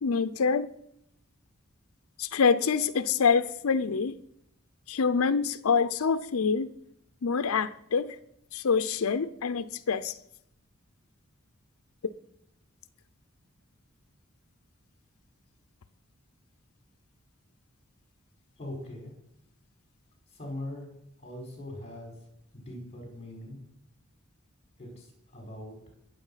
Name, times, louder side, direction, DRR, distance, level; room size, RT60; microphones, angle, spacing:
voice 1, 0.0-0.7 2.2-4.2 4.9-6.7 7.2-8.2 8.5-10.1, left 5 dB, 85° left, 0.6 m, -26 dB
voice 2, 18.6-19.1 20.4-20.9 21.2-22.1 22.5-23.6 24.8-25.1 25.3-25.7, left 1 dB, 30° left, 5.1 m, -40 dB
21.5 x 7.6 x 5.7 m
head